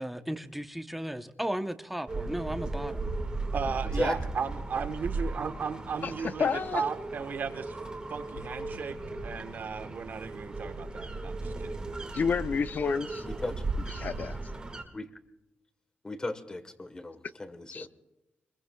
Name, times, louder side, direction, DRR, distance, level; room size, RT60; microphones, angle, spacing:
voice 1, 0.0-3.1, right 1 dB, 5° right, 8 dB, 0.7 m, -35 dB
sound 1, 2.1-14.8, right 3 dB, 20° right, 1.8 m, -36 dB
voice 2, 3.5-7.8 8.1-9.0 9.2-11.8, right 6 dB, 55° right, 8 dB, 1.2 m, -35 dB
Insect, 5.3-6.7 8.3-10.0, left 4 dB, 75° left, 1.9 m, -51 dB
voice 3, 6.0-6.8 12.1-13.2 14.0-14.4 17.7-17.9, left 5 dB, 50° left, 13 dB, 0.6 m, -30 dB
voice 4, 13.2-13.5 14.9-15.1 16.0-17.9, left 2 dB, 20° left, 11 dB, 1.2 m, -35 dB
26.0 x 21.0 x 2.3 m, 0.93 s
wide cardioid pair, 145°, 4 cm